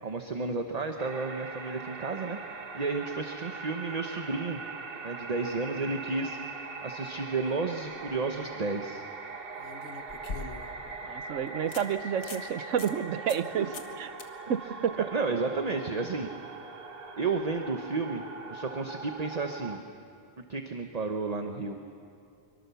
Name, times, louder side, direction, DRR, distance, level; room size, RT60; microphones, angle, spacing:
voice 1, 0.0-2.4 2.7-4.7 5.0-9.0 13.6-13.7 15.0-16.3 17.2-19.8 20.4-21.8, right 3 dB, 35° right, 5 dB, 1.1 m, -32 dB
sound 1, 1.0-19.8, right 4 dB, 50° right, 1.4 m, -41 dB
sound 2, 7.8-8.2 9.6-10.9 11.3-11.4 11.7-11.8 12.2-12.5 12.8-12.9 13.3-13.5 13.7-13.9 14.2-14.3 17.4-17.5, left 3 dB, 70° left, 1.8 m, -41 dB
voice 2, 11.0-14.1 14.5-15.1, right 8 dB, 90° right, 12 dB, 1.2 m, -30 dB
24.5 x 24.0 x 7.0 m, 2.6 s
omnidirectional pair, 1.3 m